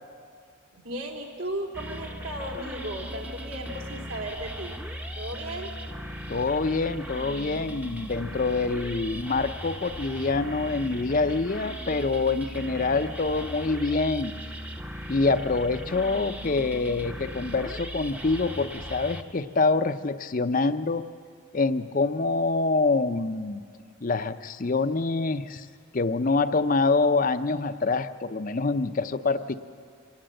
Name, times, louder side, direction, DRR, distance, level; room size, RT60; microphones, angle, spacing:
voice 1, 0.7-4.8 5.1-5.7, right 1 dB, 70° right, 0 dB, 3.1 m, -35 dB
sound 1, 1.7-19.2, equal, 5° right, 0.8 m, -38 dB
voice 2, 6.3-14.4 15.1-21.1 21.5-23.6 24.0-25.7 25.9-29.5, left 3 dB, 40° left, 11 dB, 0.6 m, -26 dB
25.5 x 18.0 x 7.7 m, 2.1 s
head